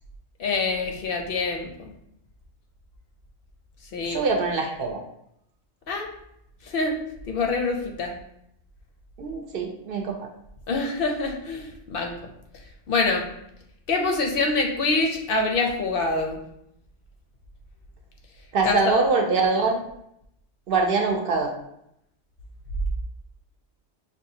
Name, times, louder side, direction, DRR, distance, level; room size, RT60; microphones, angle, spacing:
voice 1, 0.4-1.9 3.9-4.3 5.9-6.1 6.7-7.0 7.3-8.1 10.7-12.1 12.9-13.3 13.9-16.4 18.6-19.0, left 3 dB, 65° left, 2 dB, 0.7 m, -25 dB
voice 2, 4.0-5.0 9.2-10.2 18.5-19.8 20.7-21.5, right 4 dB, 65° right, 2 dB, 0.7 m, -23 dB
5.2 x 2.3 x 2.7 m, 0.77 s
omnidirectional pair, 1.1 m